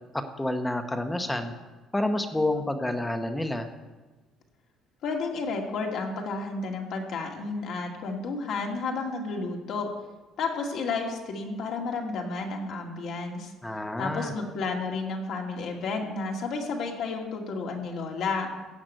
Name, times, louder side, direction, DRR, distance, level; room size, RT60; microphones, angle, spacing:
voice 1, 0.0-1.5 1.9-3.7 13.6-14.3, left 1 dB, 5° left, 7 dB, 0.9 m, -29 dB
voice 2, 5.0-9.9 10.4-13.5 14.0-18.5, left 4 dB, 55° left, 1 dB, 2.1 m, -31 dB
15.5 x 6.0 x 9.0 m, 1.2 s
cardioid pair, 160°, 0 cm